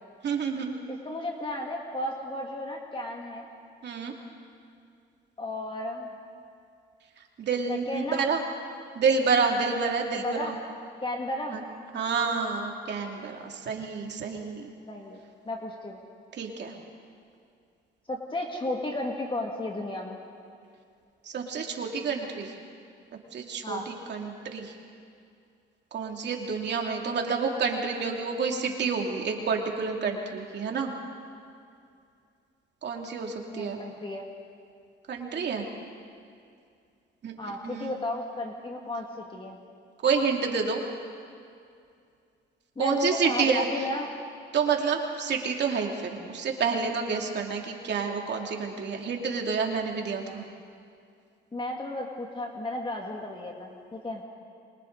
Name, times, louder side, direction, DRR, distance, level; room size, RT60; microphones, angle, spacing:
voice 1, 0.2-0.8 3.8-4.1 7.4-8.4 8.9-10.5 11.5-11.7 11.9-14.7 16.3-16.7 21.2-22.6 23.3-24.7 25.9-30.9 32.8-33.8 35.1-35.7 37.2-37.3 37.6-38.0 40.0-40.8 42.8-43.7 44.5-50.4, right 5 dB, 60° right, 1 dB, 2.8 m, -29 dB
voice 2, 0.9-3.5 5.4-6.1 7.7-8.3 10.2-10.6 11.0-11.6 14.9-16.0 18.1-20.2 23.6-23.9 33.5-34.2 37.4-39.6 42.8-44.1 51.5-54.2, left 1 dB, 25° left, 0 dB, 2.2 m, -34 dB
28.5 x 24.0 x 4.1 m, 2.4 s
cardioid pair, 90°, 20 cm